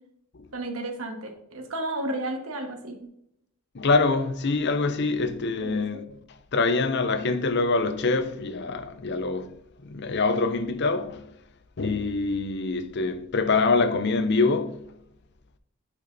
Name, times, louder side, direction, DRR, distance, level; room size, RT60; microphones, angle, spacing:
voice 1, 0.5-3.1 5.6-6.0, right 1 dB, 70° right, 1.4 m, -33 dB
voice 2, 3.7-11.3 11.8-14.9, left 3 dB, 50° left, 0.6 m, -25 dB
11.0 x 5.2 x 2.7 m
head